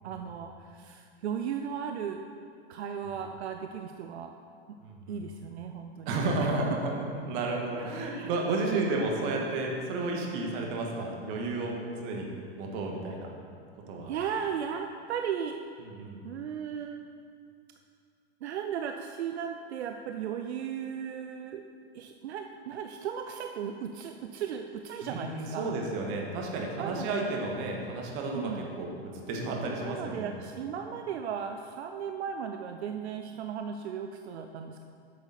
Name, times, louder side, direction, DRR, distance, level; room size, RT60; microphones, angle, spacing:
voice 1, 0.0-2.3 2.7-4.3 5.1-6.5 7.5-8.4 8.7-9.0 14.0-15.6 16.2-17.0 18.4-21.6 21.9-25.8 26.8-27.3 28.3-28.7 29.8-34.8, right 7 dB, 90° right, 5 dB, 0.5 m, -36 dB
voice 2, 4.8-5.2 6.0-6.9 7.2-12.2 12.5-13.3 13.9-14.1 15.8-16.2 25.0-28.5 28.8-30.3, right 2 dB, 55° right, 0 dB, 1.7 m, -32 dB
8.3 x 6.9 x 4.1 m, 2.3 s
hypercardioid pair, 115°, 32 cm